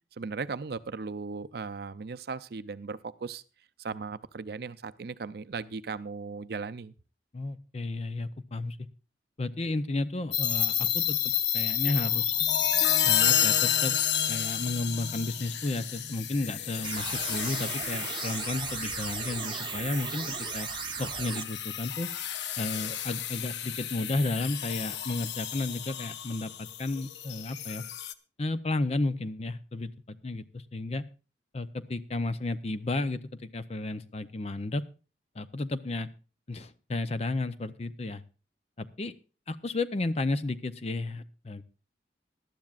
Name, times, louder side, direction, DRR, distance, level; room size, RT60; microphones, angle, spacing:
voice 1, 0.1-3.4 3.8-6.9, right 4 dB, 60° right, 12 dB, 0.5 m, -37 dB
voice 2, 7.3-8.8 9.4-12.4 13.0-14.0 14.3-20.7 21.0-22.1 22.6-27.9 28.4-31.1 31.5-34.8 35.3-36.1 36.5-38.2 38.8-39.2 39.5-41.6, left 2 dB, 35° left, 12 dB, 0.6 m, -33 dB
sound 1, 10.3-28.1, left 10 dB, 80° left, 0.7 m, -30 dB
sound 2, 16.8-21.4, right 7 dB, 25° right, 1.0 m, -36 dB
19.5 x 12.0 x 2.4 m, 0.34 s
head